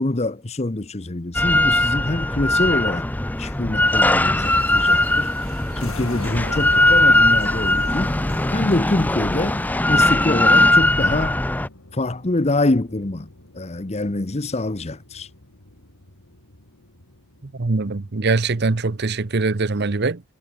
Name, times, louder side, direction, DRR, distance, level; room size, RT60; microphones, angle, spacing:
voice 1, 0.0-3.1 3.4-5.3 5.8-8.1 8.5-9.6 9.9-11.4 11.9-13.3 13.5-15.3, left 2 dB, 30° left, 0.8 m, -25 dB
Drill, 1.3-11.7, left 1 dB, 10° left, 0.5 m, -19 dB
sound 1, 4.4-9.7, right 8 dB, 75° right, 7.5 m, -49 dB
sound 2, 5.7-19.2, left 2 dB, 75° left, 2.9 m, -42 dB
voice 2, 17.4-20.2, right 3 dB, 50° right, 0.8 m, -22 dB
head